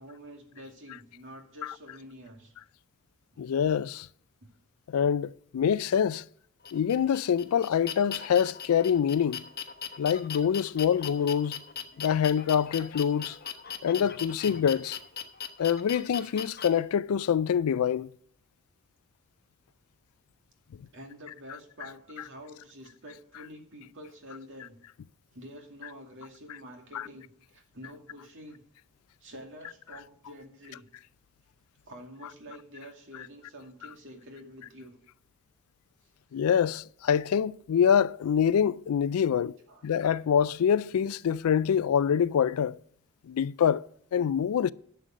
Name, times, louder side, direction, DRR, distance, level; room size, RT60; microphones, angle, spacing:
voice 1, 0.0-2.5 20.9-24.8 25.3-28.6 29.2-30.9 31.9-35.0 39.7-39.8, equal, 60° right, 2.3 m, -47 dB
voice 2, 3.4-4.1 4.9-6.2 6.7-9.4 10.0-11.6 12.0-13.4 13.8-15.0 15.6-18.1 26.9-27.1 36.3-39.6 39.8-42.8 43.3-44.7, left 8 dB, 80° left, 0.4 m, -25 dB
sound 1, 6.6-16.7, left 8 dB, 45° left, 1.0 m, -39 dB
11.5 x 6.8 x 6.2 m
head